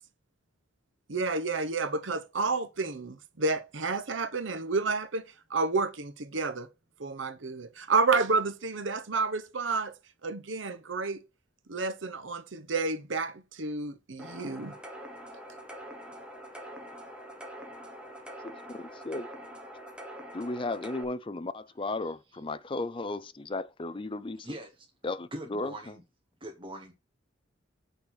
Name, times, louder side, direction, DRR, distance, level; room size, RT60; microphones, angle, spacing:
voice 1, 1.1-5.2 5.5-6.7 7.0-9.9 10.2-11.2 11.7-14.7, right 4 dB, 85° right, 1.0 m, -30 dB
sound 1, 14.2-21.0, equal, 5° right, 1.4 m, -44 dB
voice 2, 18.4-19.3 20.3-24.5 25.0-25.7, left 2 dB, 25° left, 0.5 m, -35 dB
voice 3, 21.8-22.4 24.4-24.9 25.3-26.0 26.4-26.9, right 1 dB, 25° right, 1.3 m, -43 dB
8.4 x 4.0 x 6.0 m
head